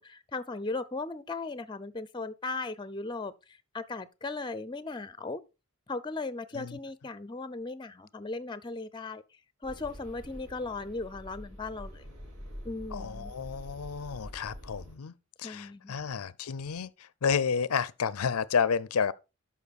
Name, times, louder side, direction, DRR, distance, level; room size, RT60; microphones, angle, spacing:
voice 1, 0.0-3.3 3.7-5.4 5.9-9.2 9.6-12.0 12.6-13.3 15.4-16.0, left 3 dB, 20° left, 0.5 m, -37 dB
sound 1, 9.6-15.0, equal, 55° right, 6.9 m, -45 dB
voice 2, 12.9-15.1 15.4-19.1, left 6 dB, 85° left, 0.5 m, -31 dB
12.0 x 5.3 x 4.1 m
head